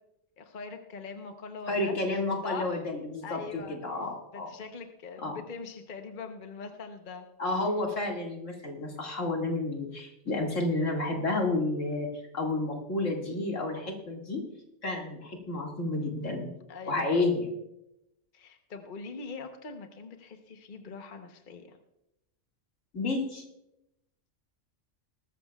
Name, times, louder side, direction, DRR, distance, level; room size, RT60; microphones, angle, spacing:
voice 1, 0.4-2.0 2.4-2.8 3.2-3.8 4.3-7.3 14.9-15.1 16.7-17.2 18.3-21.8, left 4 dB, 45° left, 5 dB, 1.1 m, -42 dB
voice 2, 1.7-4.5 5.2-5.4 7.4-12.1 12.3-14.4 14.8-16.5 16.9-17.5 22.9-23.4, left 2 dB, 85° left, 0 dB, 2.5 m, -30 dB
20.5 x 13.5 x 2.3 m, 0.85 s
omnidirectional pair, 1.3 m